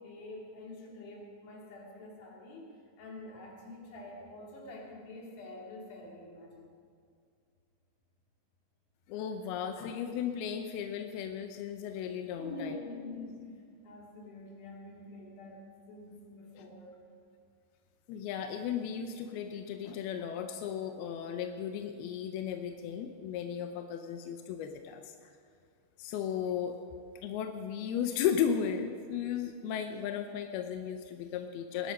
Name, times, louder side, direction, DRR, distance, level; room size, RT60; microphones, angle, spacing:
voice 1, 0.0-6.7 12.4-13.5 13.8-17.0, left 2 dB, 55° left, -2 dB, 4.2 m, -46 dB
voice 2, 9.1-12.9 16.6-16.7 18.1-25.1 26.0-26.8 27.2-31.9, left 8 dB, 80° left, 6 dB, 2.3 m, -35 dB
19.5 x 12.5 x 5.4 m, 2.2 s
omnidirectional pair, 5.2 m